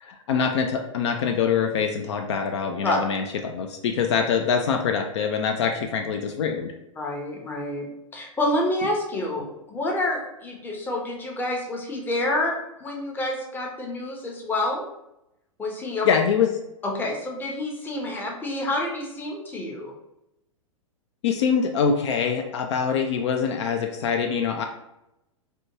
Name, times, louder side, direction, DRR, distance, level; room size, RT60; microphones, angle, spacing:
voice 1, 0.0-6.7 16.0-16.5 21.2-24.6, left 6 dB, 55° left, 4 dB, 0.4 m, -24 dB
voice 2, 7.0-7.9 8.1-14.8 15.6-16.1 16.8-19.9, left 1 dB, 10° left, 0 dB, 0.6 m, -28 dB
3.4 x 2.2 x 2.9 m, 0.86 s
figure-of-eight pair, 100°, 17 cm